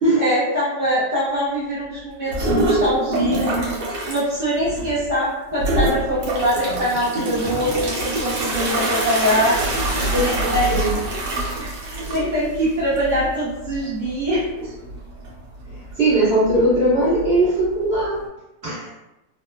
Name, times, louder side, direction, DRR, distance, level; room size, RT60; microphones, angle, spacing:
voice 1, 0.2-3.7 4.0-9.6 10.2-10.7 11.6-14.7, equal, 25° right, -12 dB, 0.9 m, -23 dB
sound 1, 2.3-4.2 4.6-5.1 5.6-18.2, right 1 dB, 70° right, 1.1 m, -25 dB
voice 2, 9.9-10.9 12.0-12.2 16.0-18.2 18.6-18.9, right 1 dB, 40° right, -11 dB, 1.5 m, -20 dB
3.1 x 2.2 x 2.3 m, 0.96 s
omnidirectional pair, 1.9 m